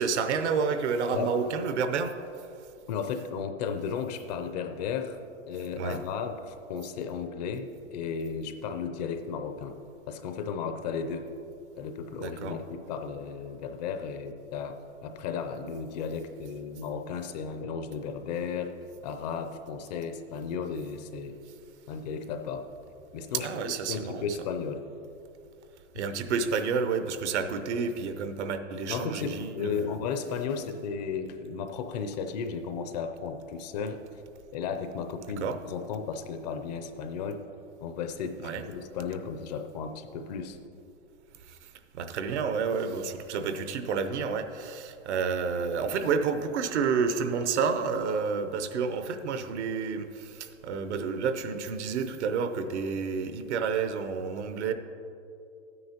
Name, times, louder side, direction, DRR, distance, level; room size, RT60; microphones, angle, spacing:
voice 1, 0.0-2.1 5.8-6.0 12.2-12.6 23.3-24.2 25.9-29.9 35.4-35.6 38.4-38.6 41.4-54.7, right 5 dB, 65° right, 9 dB, 0.9 m, -30 dB
voice 2, 2.9-5.2 5.5-9.8 10.1-11.3 11.8-18.7 19.0-21.4 21.9-22.6 23.1-23.5 23.9-24.8 25.9-26.0 28.9-34.2 34.5-37.4 37.8-40.6, left 6 dB, 35° left, 7 dB, 0.5 m, -34 dB
12.0 x 9.6 x 2.9 m, 2.6 s
hypercardioid pair, 145°, 36 cm